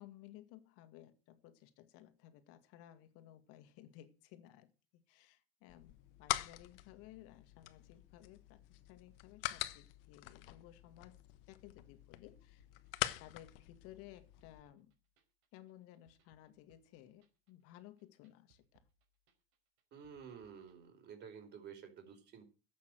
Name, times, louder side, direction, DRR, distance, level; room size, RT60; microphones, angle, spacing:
voice 1, 0.0-11.2 11.5-12.7 13.2-14.9 15.5-18.9, left 13 dB, 50° left, 2.0 m, -58 dB
sound 1, 5.7-14.6, left 17 dB, 70° left, 1.2 m, -44 dB
sound 2, 12.6-20.8, right 4 dB, 65° right, 5.2 m, -77 dB
voice 2, 19.9-22.4, right 7 dB, 35° right, 4.7 m, -52 dB
12.5 x 8.5 x 7.7 m
supercardioid pair, 140°, 29 cm